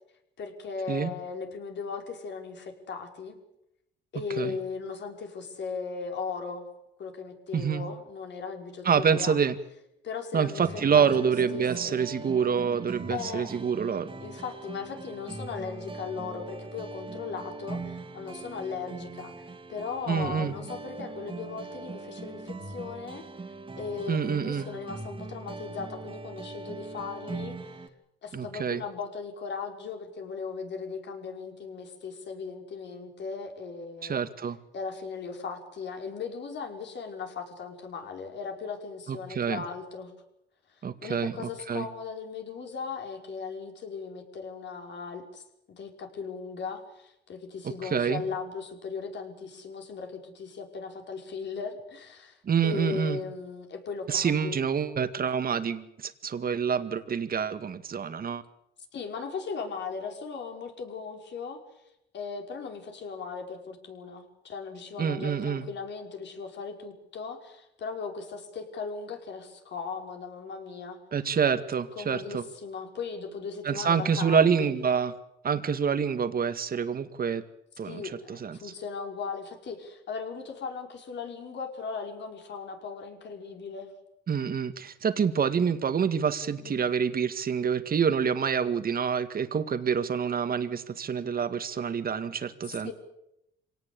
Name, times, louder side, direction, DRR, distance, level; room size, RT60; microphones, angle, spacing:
voice 1, 0.4-3.4 4.1-6.7 7.0-9.4 10.0-10.7 10.9-12.1 13.1-13.6 14.2-23.2 23.8-27.8 28.2-34.3 34.7-40.1 40.7-45.4 45.8-54.6 58.9-61.6 62.1-71.0 72.0-74.8 77.8-83.9 86.6-87.0 92.6-92.9, left 5 dB, 65° left, 3 dB, 5.5 m, -38 dB
voice 2, 7.5-7.8 8.8-9.6 10.3-14.1 20.1-20.6 24.1-24.7 28.3-28.8 34.0-34.6 39.1-39.6 40.8-41.3 41.7-41.9 47.8-48.2 52.4-53.2 54.1-58.4 65.0-65.7 71.1-72.4 73.6-75.1 75.4-77.4 77.8-78.6 84.3-92.9, right 7 dB, 45° right, 10 dB, 2.0 m, -27 dB
sound 1, 10.6-27.9, right 3 dB, 25° right, 2.6 m, -41 dB
25.5 x 18.5 x 8.4 m, 0.83 s
cardioid pair, 90°, 20 cm